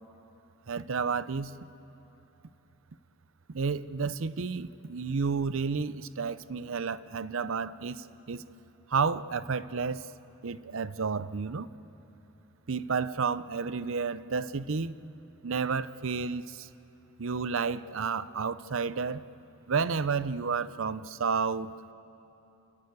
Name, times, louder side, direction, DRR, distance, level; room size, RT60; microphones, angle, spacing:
voice 1, 0.7-1.5 3.5-8.4 8.9-10.1 10.4-11.7 12.7-15.0 15.4-16.7 17.2-19.2 19.7-21.7, right 5 dB, 65° right, 16 dB, 0.6 m, -31 dB
29.5 x 14.5 x 9.6 m, 2.9 s
head